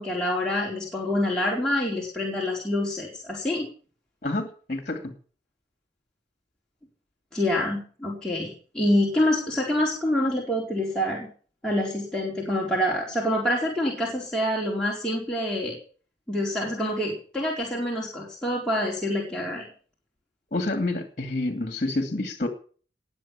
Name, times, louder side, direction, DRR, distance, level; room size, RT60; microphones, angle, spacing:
voice 1, 0.0-3.7 7.3-11.3 11.6-15.8 16.3-19.7, left 1 dB, 5° left, -5 dB, 4.4 m, -26 dB
voice 2, 4.2-5.1 20.5-22.5, left 2 dB, 40° left, 6 dB, 2.5 m, -28 dB
20.0 x 7.8 x 8.9 m, 0.43 s
head